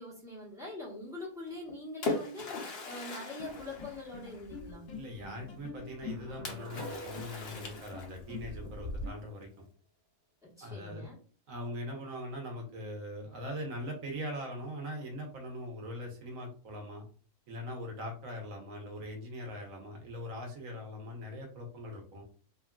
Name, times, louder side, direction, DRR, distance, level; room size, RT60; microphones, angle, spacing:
voice 1, 0.0-4.9 10.4-11.2, left 2 dB, 5° right, -6 dB, 1.0 m, -44 dB
Splash splatter, 1.5-4.7 6.5-8.4, left 3 dB, 55° left, 0.8 m, -39 dB
sound 1, 3.4-9.1, left 3 dB, 80° left, 1.1 m, -44 dB
voice 2, 4.9-9.5 10.6-11.1 11.5-17.0 17.5-22.2, equal, 70° right, 2 dB, 1.2 m, -41 dB
sound 2, 5.9-9.0, right 1 dB, 55° right, 1.1 m, -49 dB
2.9 x 2.4 x 2.3 m, 0.39 s
omnidirectional pair, 1.5 m